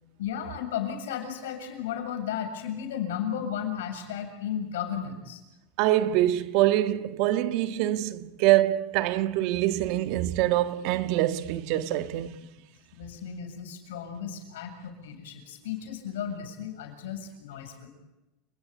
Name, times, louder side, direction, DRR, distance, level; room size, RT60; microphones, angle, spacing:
voice 1, 0.2-5.4 12.9-17.9, left 8 dB, 90° left, 7.2 m, -34 dB
voice 2, 5.8-12.4, right 14 dB, 60° right, 1.5 m, -25 dB
29.5 x 19.0 x 9.9 m
supercardioid pair, 125°, 0 cm